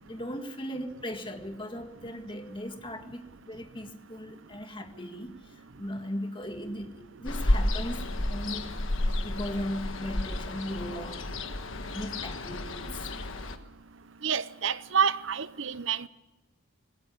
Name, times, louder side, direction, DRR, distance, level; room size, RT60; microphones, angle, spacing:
voice 1, 0.0-8.7 9.2-11.2 11.9-13.4, equal, 25° left, 6 dB, 1.8 m, -38 dB
Ocean, 7.3-13.6, left 1 dB, 65° left, 1.5 m, -31 dB
voice 2, 14.2-16.1, right 7 dB, 60° right, 16 dB, 0.8 m, -28 dB
20.0 x 17.0 x 8.4 m, 1.0 s
head